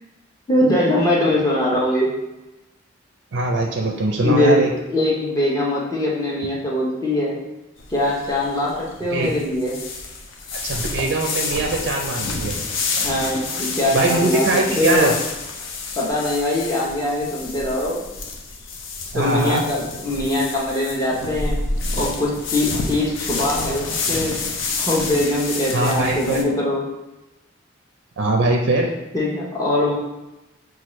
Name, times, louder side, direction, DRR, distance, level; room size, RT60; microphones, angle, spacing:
voice 1, 0.5-2.1 4.2-4.6 4.9-7.4 7.9-9.8 13.0-15.1 16.0-18.0 19.1-21.6 21.9-24.4 24.8-26.8 29.1-29.9, left 1 dB, 15° left, -5 dB, 0.8 m, -22 dB
voice 2, 3.3-4.7 9.1-9.3 10.5-12.6 13.9-15.1 19.1-19.6 25.7-26.5 28.2-28.9, right 2 dB, 55° right, 1 dB, 0.4 m, -21 dB
sound 1, 7.8-26.4, left 3 dB, 65° left, 0.5 m, -29 dB
5.7 x 2.4 x 3.1 m, 1.0 s
head